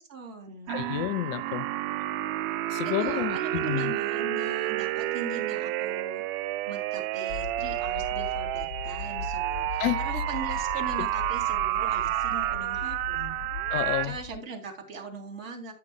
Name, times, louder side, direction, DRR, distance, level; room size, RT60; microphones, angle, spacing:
voice 1, 0.0-0.8 3.0-6.2 6.7-13.4 14.0-15.7, right 4 dB, 60° right, 3.3 m, -40 dB
voice 2, 0.7-1.7 2.7-3.9 9.8-10.0 13.7-14.2, left 14 dB, 35° left, 0.8 m, -30 dB
sound 1, 0.7-14.1, right 15 dB, 40° right, 0.6 m, -30 dB
sound 2, 7.3-14.4, left 6 dB, 65° left, 1.8 m, -38 dB
14.0 x 6.5 x 2.3 m
figure-of-eight pair, 105°, 44 cm